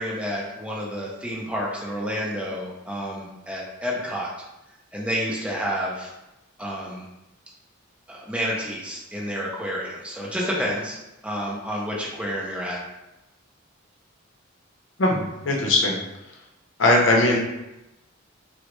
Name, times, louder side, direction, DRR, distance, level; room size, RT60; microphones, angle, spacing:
voice 1, 0.0-4.3 4.9-6.1 6.6-7.0 8.1-11.0 11.2-12.8, equal, 5° right, -4 dB, 0.6 m, -29 dB
voice 2, 15.0-16.0 16.8-17.4, left 2 dB, 65° left, 0 dB, 0.7 m, -19 dB
3.7 x 2.1 x 3.1 m, 0.94 s
head